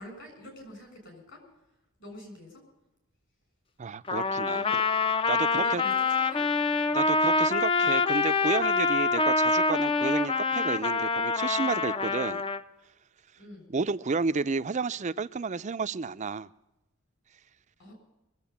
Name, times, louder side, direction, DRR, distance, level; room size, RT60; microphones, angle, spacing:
voice 1, 0.0-1.4 2.0-2.6 4.5-4.8 5.5-6.5 7.8-7.9 13.4-13.7 17.8-17.9, equal, 55° left, 3 dB, 6.9 m, -46 dB
voice 2, 3.8-4.6 5.3-5.8 6.9-12.4 13.7-16.5, right 4 dB, 30° right, 13 dB, 0.4 m, -31 dB
Trumpet, 4.1-12.6, left 4 dB, 25° left, 0.5 m, -26 dB
24.0 x 8.2 x 7.1 m, 0.96 s
head